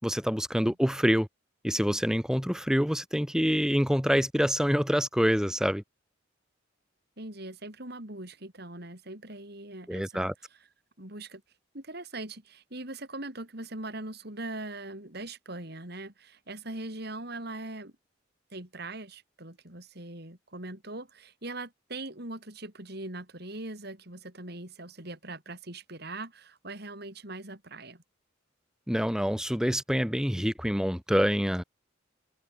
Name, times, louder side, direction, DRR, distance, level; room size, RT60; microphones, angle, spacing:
voice 1, 0.0-1.3 1.6-5.8 9.9-10.3 28.9-31.6, equal, 5° right, 3.3 m, -26 dB
voice 2, 7.2-10.6 11.0-11.4 11.7-17.9 18.5-28.0, right 2 dB, 55° right, 5.2 m, -41 dB
head